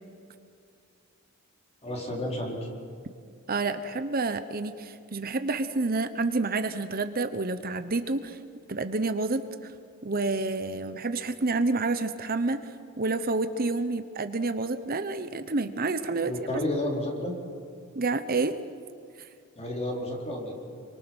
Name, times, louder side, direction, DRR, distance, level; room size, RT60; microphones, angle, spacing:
voice 1, 1.8-2.6 16.2-17.3 19.6-20.6, left 1 dB, 30° left, 0 dB, 4.5 m, -31 dB
voice 2, 3.5-8.4 8.7-9.7 10.0-16.3 17.9-18.6 19.2-19.3, right 3 dB, 45° right, 10 dB, 1.0 m, -29 dB
28.0 x 24.5 x 6.3 m, 2.4 s
head